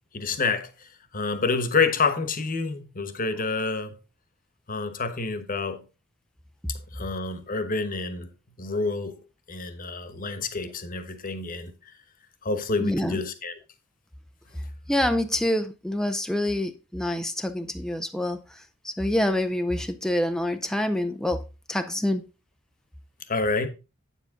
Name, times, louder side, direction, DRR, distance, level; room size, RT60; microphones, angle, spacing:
voice 1, 0.1-4.0 4.7-5.8 6.9-8.3 8.6-9.2 9.5-11.7 12.4-13.5 23.3-23.7, left 4 dB, 40° left, 1.2 m, -28 dB
voice 2, 12.8-13.2 14.9-22.2, left 1 dB, 5° left, 0.5 m, -27 dB
8.9 x 7.4 x 3.8 m
head